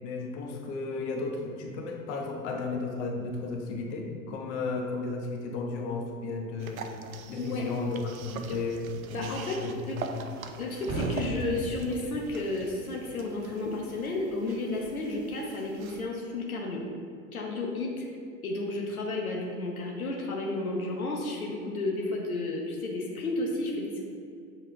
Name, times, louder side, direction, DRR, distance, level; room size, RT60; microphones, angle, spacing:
voice 1, 0.0-7.0 7.3-8.9 9.2-9.7 10.1-10.2, left 3 dB, 50° left, 0 dB, 1.2 m, -34 dB
sound 1, 6.6-16.0, right 5 dB, 75° right, 0.6 m, -42 dB
voice 2, 7.3-7.6 9.1-9.6 9.9-10.0 10.6-16.8 17.3-18.0 18.4-24.0, left 2 dB, 85° left, -1 dB, 0.9 m, -32 dB
Explosion, 10.9-12.5, right 1 dB, 15° right, 1.4 m, -37 dB
6.9 x 4.4 x 3.7 m, 2.4 s
figure-of-eight pair, 90°, 42 cm